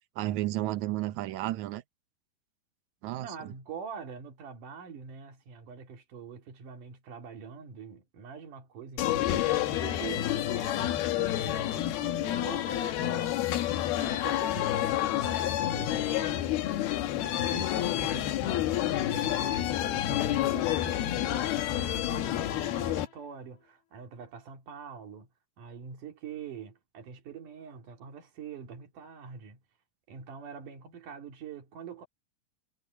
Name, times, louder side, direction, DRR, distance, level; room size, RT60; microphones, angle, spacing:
voice 1, 0.1-1.8 3.0-3.5, right 15 dB, 75° right, 1.7 m, -32 dB
voice 2, 3.2-13.4 14.0-16.5 17.2-25.3 25.6-29.6 30.1-32.1, right 6 dB, 60° right, 4.0 m, -45 dB
sound 1, 9.0-23.1, left 13 dB, 80° left, 3.2 m, -29 dB
omnidirectional pair, 4.4 m